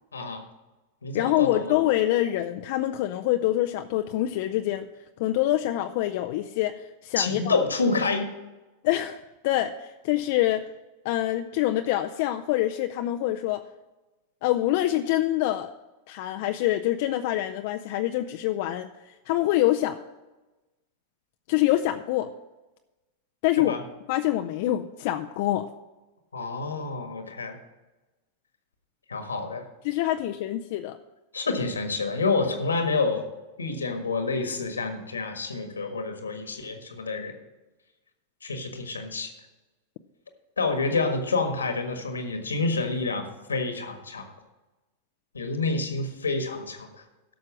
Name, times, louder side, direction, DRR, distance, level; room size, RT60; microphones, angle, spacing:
voice 1, 0.1-0.4 1.0-1.7 7.2-8.3 23.6-23.8 26.3-27.6 29.1-29.6 31.3-33.2 33.6-37.3 38.4-39.3 40.6-44.3 45.3-46.9, left 3 dB, 90° left, 6 dB, 1.5 m, -28 dB
voice 2, 1.1-4.9 5.2-7.6 8.8-10.6 11.0-13.6 14.4-15.7 16.1-18.9 19.3-20.0 21.5-22.3 23.4-23.8 24.1-25.7 29.8-31.0, left 14 dB, 55° left, 6 dB, 0.5 m, -25 dB
12.0 x 6.3 x 6.1 m, 1.1 s
hypercardioid pair, 100°, 0 cm